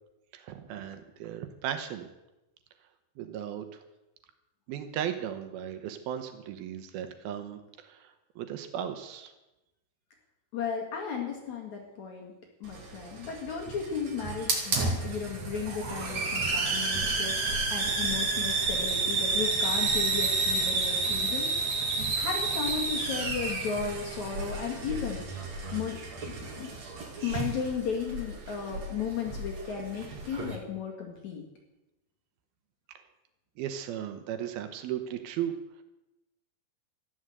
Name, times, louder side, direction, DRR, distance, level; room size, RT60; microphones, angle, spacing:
voice 1, 0.3-2.1 3.2-3.8 4.7-9.3 33.6-35.5, right 10 dB, 90° right, 8 dB, 3.0 m, -36 dB
voice 2, 10.5-12.3 12.6-17.4 17.7-21.5 22.2-25.2 25.7-26.0 26.2-26.7 27.2-31.4, left 6 dB, 55° left, 0 dB, 3.2 m, -35 dB
Hiss, 12.6-30.6, right 3 dB, 50° right, 3.5 m, -31 dB
14.0 x 11.5 x 8.0 m, 0.97 s
omnidirectional pair, 4.2 m